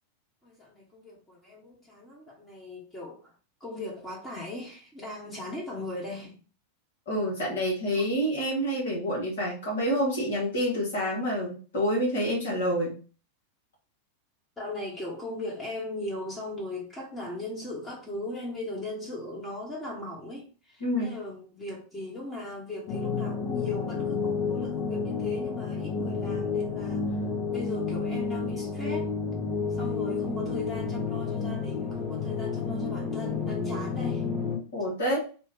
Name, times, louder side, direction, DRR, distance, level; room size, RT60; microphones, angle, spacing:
voice 1, 0.4-3.3 3.6-6.4 14.6-27.2 27.5-29.1 29.7-34.2, left 2 dB, 10° left, 1.1 m, -38 dB
voice 2, 7.1-13.0 20.8-21.2 34.7-35.2, equal, 60° left, 1.3 m, -28 dB
sound 1, 22.9-34.6, left 5 dB, 35° left, 0.9 m, -30 dB
2.9 x 2.3 x 3.6 m
figure-of-eight pair, 90°, 0 cm